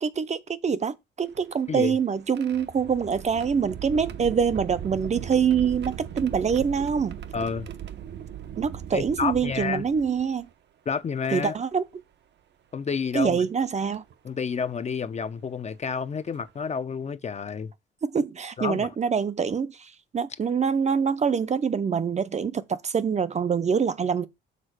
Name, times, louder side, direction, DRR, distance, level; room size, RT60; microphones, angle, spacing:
voice 1, 0.0-7.2 8.6-10.5 11.3-11.8 13.1-14.0 18.0-19.8 20.1-24.3, right 6 dB, 35° right, 0.7 m, -25 dB
sound 1, 1.2-10.5 11.4-11.5 13.0-13.2 13.9-14.1 15.7-15.8 16.3-16.5, right 9 dB, 60° right, 0.9 m, -39 dB
voice 2, 7.3-7.7 8.9-9.8 10.9-11.6 12.7-13.4 14.2-17.7 18.6-18.9, left 6 dB, 35° left, 0.6 m, -29 dB
6.7 x 3.8 x 6.4 m
cardioid pair, 90°, 20 cm